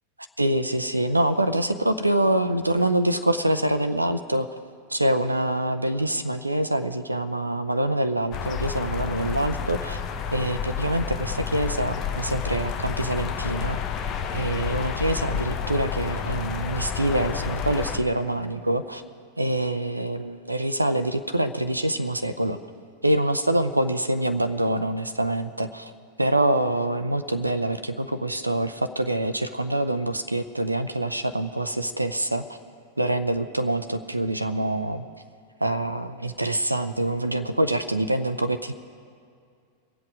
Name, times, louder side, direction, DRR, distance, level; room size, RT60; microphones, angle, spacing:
voice 1, 0.4-4.5 4.9-10.0 10.3-13.8 14.3-19.0 19.4-22.6 23.0-25.9 26.2-32.6 33.0-35.0 35.6-38.7, right 1 dB, 85° right, 11 dB, 0.6 m, -25 dB
sound 1, 8.3-18.0, left 7 dB, 35° left, 1.0 m, -30 dB
23.5 x 8.1 x 4.8 m, 2.3 s
figure-of-eight pair, 90°, 0 cm